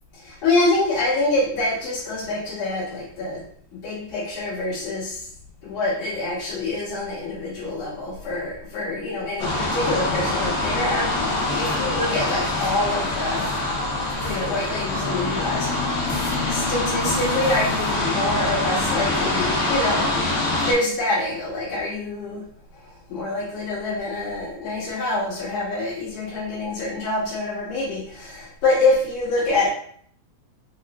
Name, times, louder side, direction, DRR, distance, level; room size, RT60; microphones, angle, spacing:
voice 1, 0.2-3.4 3.7-5.2 5.6-13.5 14.2-16.2 16.5-20.2 20.6-22.4 23.1-29.7, left 2 dB, 90° left, -10 dB, 3.1 m, -26 dB
sound 1, 9.4-20.7, left 2 dB, 70° left, 1.2 m, -24 dB
6.1 x 2.1 x 2.5 m, 0.62 s
omnidirectional pair, 3.4 m